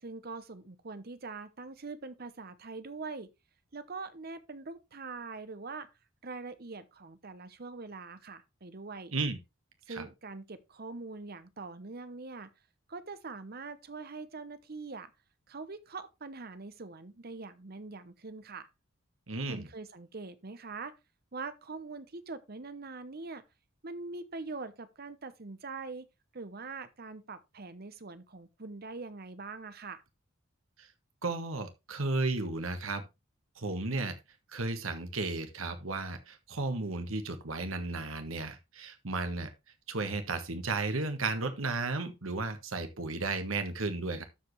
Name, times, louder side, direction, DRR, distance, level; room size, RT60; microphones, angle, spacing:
voice 1, 0.0-3.3 3.7-5.9 6.2-9.1 9.9-12.5 12.9-15.1 15.5-18.7 19.5-21.0 21.3-23.4 23.8-26.1 26.3-30.0, right 3 dB, 45° right, 0.9 m, -43 dB
voice 2, 19.3-19.7 30.8-30.9 31.2-33.0 33.6-34.2 34.5-39.5 39.9-44.2, right 3 dB, 80° right, 1.5 m, -34 dB
13.0 x 5.2 x 3.2 m
head